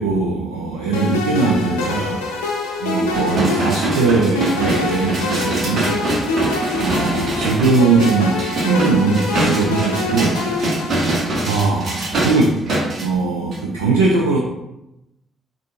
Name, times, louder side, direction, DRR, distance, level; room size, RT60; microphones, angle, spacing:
voice 1, 0.0-2.2 2.8-6.0 6.8-10.5 11.4-12.6 13.0-14.4, right 3 dB, 85° right, -2 dB, 0.3 m, -20 dB
sound 1, 0.9-11.6, left 2 dB, 85° left, 0.5 m, -25 dB
sound 2, 3.1-13.0 13.5-13.6, right 1 dB, 55° right, 1.0 m, -23 dB
3.7 x 2.4 x 3.5 m, 0.89 s
hypercardioid pair, 45°, 0 cm